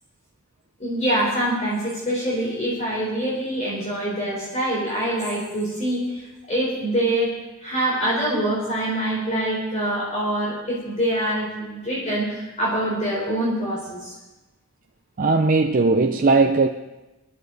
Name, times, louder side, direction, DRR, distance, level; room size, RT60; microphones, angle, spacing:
voice 1, 0.8-7.3 7.6-14.1, right 1 dB, 30° left, -6 dB, 4.0 m, -25 dB
voice 2, 15.2-16.7, right 3 dB, 40° right, 5 dB, 0.5 m, -18 dB
24.5 x 10.5 x 4.0 m, 1.1 s
head